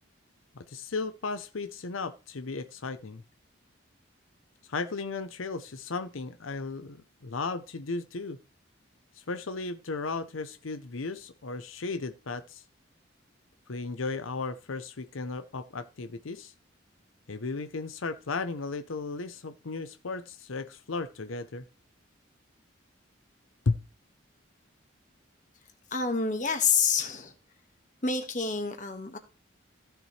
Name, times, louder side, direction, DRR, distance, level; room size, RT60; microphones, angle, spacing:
voice 1, 0.5-3.2 4.7-7.0 7.2-8.4 9.1-12.6 13.7-16.5 17.3-21.6 23.7-23.8, left 3 dB, 90° left, 0.7 m, -35 dB
voice 2, 25.9-27.3 28.0-29.2, left 5 dB, 40° left, 1.6 m, -28 dB
15.0 x 7.0 x 3.2 m
head